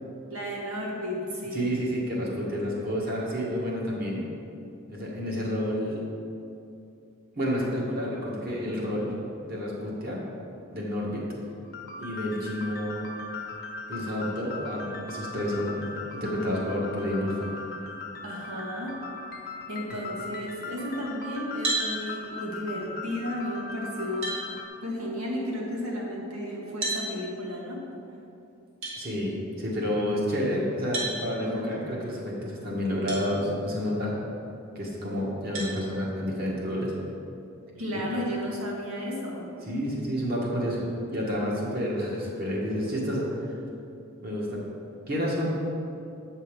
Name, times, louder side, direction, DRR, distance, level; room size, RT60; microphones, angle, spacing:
voice 1, 0.3-1.8 18.2-19.0 19.7-24.3 24.8-27.8 31.4-31.8 37.8-39.5, equal, 85° right, -3 dB, 1.8 m, -33 dB
voice 2, 1.5-4.3 4.9-6.0 7.4-9.1 9.4-10.2 10.7-11.2 11.9-13.1 13.9-17.5 29.0-34.1 34.8-36.9 37.9-38.0 39.7-40.8 41.1-43.3 44.2-44.6 45.1-45.5, equal, 45° right, -4 dB, 1.8 m, -29 dB
sound 1, 11.6-24.7, left 3 dB, 45° left, 0.9 m, -39 dB
sound 2, 21.6-21.9 23.6-23.7 24.2-24.4 26.8-27.0 28.8-29.0 30.9-31.2 33.1-33.2 33.9-34.0 35.5-35.7, right 2 dB, 65° right, 2.1 m, -29 dB
8.5 x 5.5 x 5.3 m, 2.7 s
head